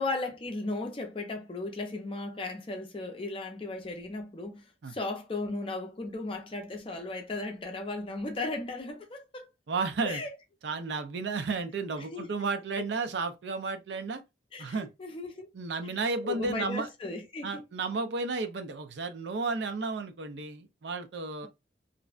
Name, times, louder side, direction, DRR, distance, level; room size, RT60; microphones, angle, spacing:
voice 1, 0.0-9.5 10.0-10.3 12.0-12.3 12.8-12.9 14.5-15.5 15.8-15.9 16.2-17.6, left 2 dB, 30° left, 0.5 m, -36 dB
voice 2, 9.7-10.2 10.6-14.2 14.6-14.9 15.5-16.9 17.4-21.5, right 4 dB, 75° right, 0.5 m, -33 dB
2.5 x 2.1 x 2.4 m
head